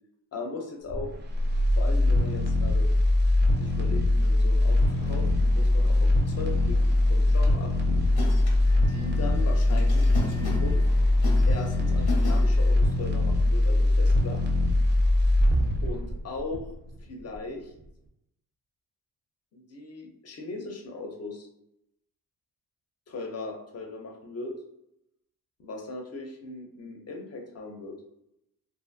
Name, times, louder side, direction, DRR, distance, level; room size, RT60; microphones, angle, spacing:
voice 1, 0.3-1.1 1.7-2.9 3.6-6.8 7.1-8.0 8.7-10.8 11.5-14.4 15.8-16.7 17.1-17.7 19.5-21.5 23.1-24.5 25.6-27.9, left 3 dB, 40° left, 2 dB, 0.6 m, -38 dB
sound 1, 0.9-17.0 17.3-17.4, left 1 dB, 30° right, 0.4 m, -22 dB
sound 2, 4.7-12.7, left 4 dB, 90° left, 0.8 m, -39 dB
2.6 x 2.4 x 2.6 m, 0.82 s
cardioid pair, 125°, 37 cm